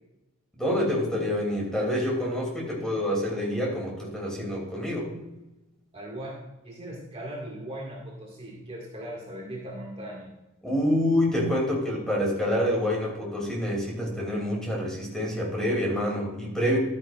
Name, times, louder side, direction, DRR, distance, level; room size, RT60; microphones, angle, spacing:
voice 1, 0.6-5.1 10.6-16.8, left 1 dB, 5° left, -2 dB, 2.7 m, -27 dB
voice 2, 5.9-10.3, right 1 dB, 30° right, -3 dB, 1.9 m, -39 dB
12.0 x 9.5 x 2.4 m, 0.97 s
head